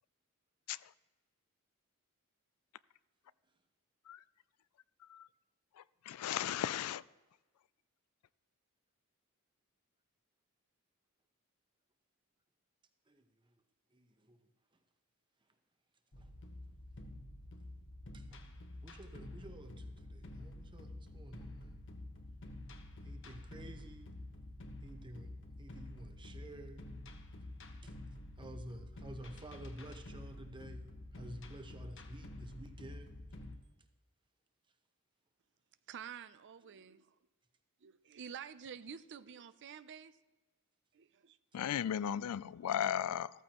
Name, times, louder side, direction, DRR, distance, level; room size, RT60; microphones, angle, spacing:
voice 1, 6.1-7.0 41.5-43.3, left 10 dB, 80° left, 0.4 m, -35 dB
voice 2, 13.1-13.5 13.9-14.5 16.2-16.3 18.1-18.5 18.8-21.8 23.0-24.1 24.8-25.3 25.6-26.8 27.8-28.0 28.4-33.1, right 1 dB, 20° right, 1.0 m, -52 dB
sound 1, 16.1-33.6, left 1 dB, 60° left, 1.2 m, -49 dB
voice 3, 35.9-37.1 37.8-40.2 40.9-41.4, right 7 dB, 55° right, 0.5 m, -49 dB
14.5 x 14.0 x 3.0 m
head